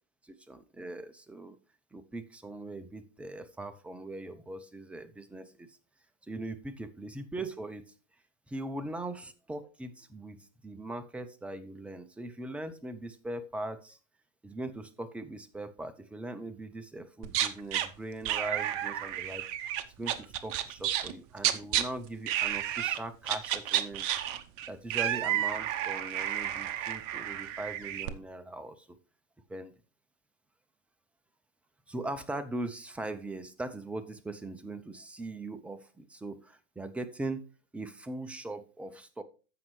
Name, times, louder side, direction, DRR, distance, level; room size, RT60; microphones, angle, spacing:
voice 1, 0.2-1.6 1.9-5.8 6.3-7.9 8.5-14.0 14.4-19.4 20.0-24.0 24.7-29.0 29.5-29.7 31.9-37.4 37.7-39.2, right 2 dB, 5° right, 9 dB, 0.5 m, -40 dB
sound 1, 17.2-17.9 18.3-21.1 21.4-21.8 22.3-23.0 23.3-28.1, right 11 dB, 35° right, 0.8 m, -31 dB
14.5 x 5.5 x 3.2 m, 0.35 s
figure-of-eight pair, 105°, 37 cm